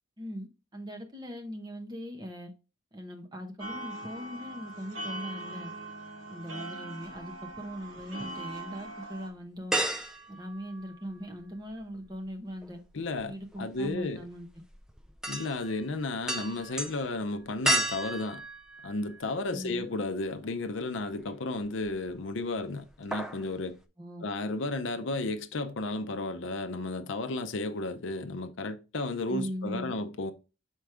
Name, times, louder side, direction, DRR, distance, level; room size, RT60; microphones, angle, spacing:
voice 1, 0.2-2.5 2.9-5.7 6.3-9.8 10.3-12.8 13.2-14.5 19.5-19.9 24.0-24.2 29.3-29.9, equal, 20° right, 1.0 m, -40 dB
sound 1, 3.6-9.3, right 2 dB, 75° right, 2.1 m, -41 dB
sound 2, 7.1-8.1 8.5-8.6 9.7-11.4 11.7-19.6 20.0-20.1 21.6-22.2 22.4-22.7 22.9-23.5 23.8-23.9, right 1 dB, 5° right, 0.4 m, -34 dB
voice 2, 12.9-14.3 15.3-18.4 18.8-23.8 24.2-30.3, left 2 dB, 65° left, 0.6 m, -33 dB
6.2 x 4.5 x 3.4 m
head